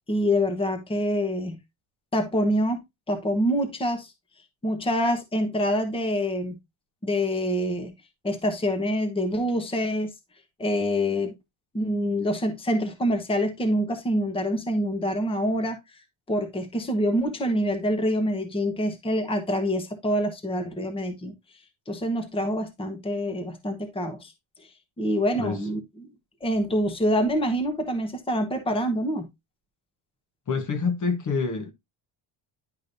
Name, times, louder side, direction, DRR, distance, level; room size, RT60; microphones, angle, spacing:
voice 1, 0.1-1.6 2.1-2.8 3.1-4.1 4.6-6.5 7.0-7.9 8.2-10.1 10.6-11.3 11.7-15.8 16.3-21.3 21.9-24.3 24.6-24.7 25.0-26.1 26.4-29.3, equal, 10° left, 1.1 m, -26 dB
voice 2, 30.5-31.7, left 5 dB, 40° left, 1.3 m, -26 dB
10.5 x 5.1 x 2.6 m
cardioid pair, 180°, 48 cm